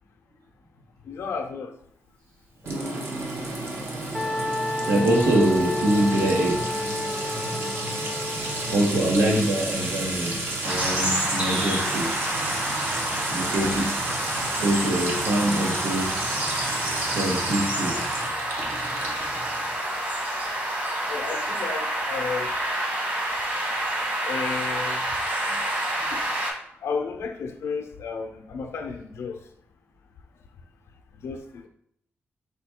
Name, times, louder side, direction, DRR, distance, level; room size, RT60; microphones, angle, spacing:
voice 1, 1.1-1.7 13.4-13.8 21.1-22.5 24.3-25.1 26.1-26.2 26.8-29.4 31.2-31.7, left 5 dB, 80° left, 4 dB, 0.5 m, -33 dB
Sink (filling or washing) / Trickle dribble / Fill (with liquid), 2.6-20.1, right 2 dB, 65° right, 0.9 m, -32 dB
Wind instrument woodwind instrument, 4.1-8.8, left 2 dB, ahead, 0.4 m, -31 dB
voice 2, 4.8-6.6 8.6-12.2 13.3-13.9 14.5-16.2 17.0-18.0, right 1 dB, 90° right, -1 dB, 1.2 m, -24 dB
sound 1, 10.6-26.5, right 1 dB, 40° right, 1.5 m, -28 dB
5.0 x 2.3 x 4.4 m, 0.69 s
wide cardioid pair, 140°, 4 cm